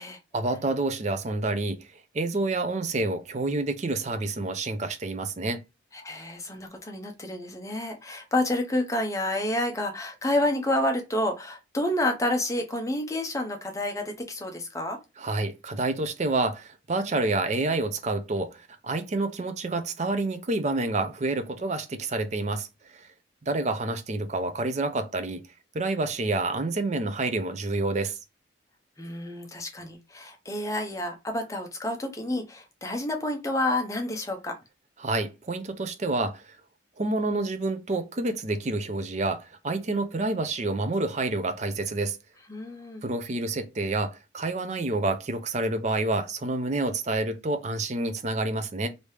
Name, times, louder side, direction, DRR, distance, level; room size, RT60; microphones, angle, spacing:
voice 1, 0.3-1.8 2.1-5.6 15.2-22.7 22.9-23.1 23.5-25.4 25.7-28.2 35.0-36.5 37.0-42.2 43.0-48.9, right 2 dB, 35° right, 0.5 m, -28 dB
voice 2, 5.9-15.0 29.0-34.6 42.5-43.0, left 1 dB, 15° left, 0.6 m, -29 dB
3.1 x 2.7 x 3.3 m
head